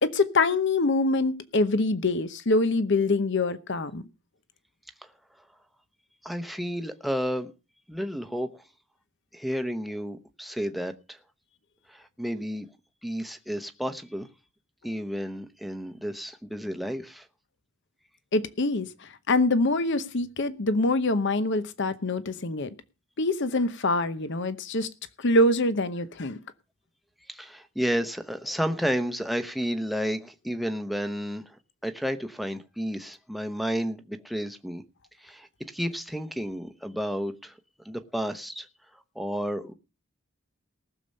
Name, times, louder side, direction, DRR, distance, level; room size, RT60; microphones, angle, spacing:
voice 1, 0.0-4.1 18.3-22.7 23.2-24.9 25.2-26.4, left 2 dB, 55° left, 0.9 m, -25 dB
voice 2, 6.2-7.5 7.9-8.6 9.3-11.2 11.9-12.7 13.0-14.3 14.8-17.3 27.3-31.6 31.8-34.8 35.2-37.5 37.8-38.7 39.1-39.7, equal, ahead, 0.9 m, -31 dB
19.0 x 6.9 x 5.4 m
head